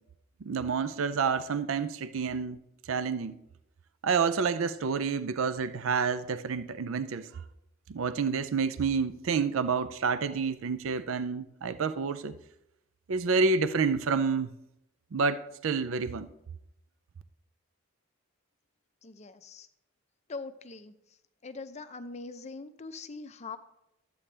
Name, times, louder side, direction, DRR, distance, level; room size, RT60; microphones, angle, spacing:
voice 1, 0.4-2.6 2.9-3.4 4.0-7.3 7.9-12.4 13.1-14.5 15.1-16.3, right 5 dB, 70° right, 0.5 m, -29 dB
voice 2, 19.0-19.7 20.3-20.9 21.4-23.6, left 3 dB, 30° left, 0.5 m, -42 dB
13.0 x 8.5 x 3.3 m
head